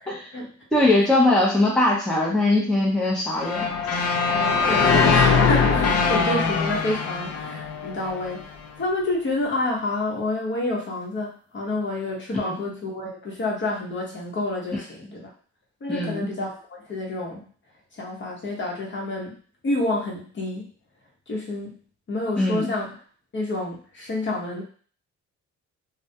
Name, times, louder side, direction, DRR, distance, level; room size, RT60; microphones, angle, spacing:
voice 1, 0.0-0.5 1.0-1.1 4.3-15.3 15.8-17.5 17.9-19.4 19.6-20.7 21.3-21.8 22.1-23.0 23.3-24.6, left 2 dB, 40° left, -2 dB, 0.9 m, -29 dB
voice 2, 0.7-3.7 12.4-12.6 15.9-16.3 22.4-22.7, left 2 dB, ahead, -4 dB, 0.6 m, -21 dB
sound 1, 3.4-8.4, left 5 dB, 55° left, 0.5 m, -21 dB
2.2 x 2.2 x 2.7 m, 0.43 s
cardioid pair, 90°, 30 cm